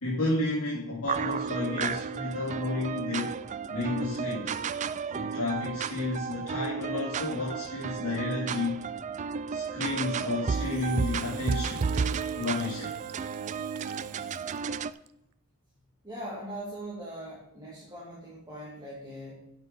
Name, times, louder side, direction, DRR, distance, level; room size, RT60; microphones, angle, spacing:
voice 1, 0.0-3.4 3.7-4.6 5.1-8.9 9.5-11.9 12.4-12.9, left 2 dB, 85° left, -7 dB, 2.8 m, -31 dB
sound 1, 1.1-14.9, right 6 dB, 35° right, 0.3 m, -33 dB
Engine / Drill, 10.5-15.1, right 6 dB, 80° right, 0.6 m, -46 dB
voice 2, 16.0-19.5, right 1 dB, 15° right, -7 dB, 2.8 m, -41 dB
9.5 x 7.1 x 5.3 m, 0.79 s
head